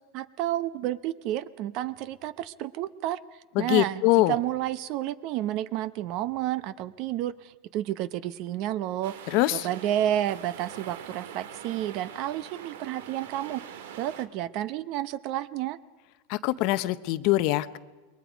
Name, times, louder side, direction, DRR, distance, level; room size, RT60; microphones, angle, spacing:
voice 1, 0.1-3.2 3.6-9.1 9.5-15.8, right 12 dB, 40° right, 17 dB, 0.7 m, -31 dB
voice 2, 3.6-4.3 9.3-9.7 16.3-17.8, left 17 dB, 45° left, 14 dB, 0.7 m, -23 dB
sound 1, 9.0-14.3, right 8 dB, 75° right, 1.7 m, -44 dB
27.5 x 22.0 x 5.1 m, 1.3 s
supercardioid pair, 165°, 0 cm